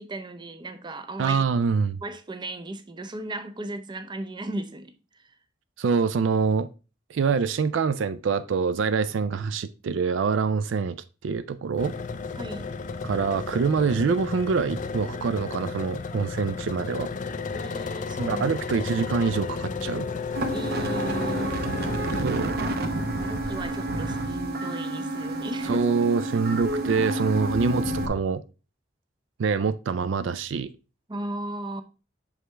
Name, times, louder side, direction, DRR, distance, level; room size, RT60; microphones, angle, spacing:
voice 1, 0.0-1.4 2.0-5.3 12.4-12.7 17.5-18.4 20.5-21.6 23.2-25.9 31.1-31.8, right 1 dB, 25° right, 0.6 m, -36 dB
voice 2, 1.2-2.0 5.8-6.7 7.1-11.0 11.2-11.9 13.0-17.1 18.2-20.1 22.2-22.6 25.6-28.4 29.4-30.7, right 5 dB, 80° right, 0.4 m, -25 dB
sound 1, 11.8-22.3, left 4 dB, 40° left, 0.4 m, -33 dB
sound 2, 20.3-28.1, right 1 dB, 55° right, 0.8 m, -29 dB
6.4 x 4.9 x 3.2 m
head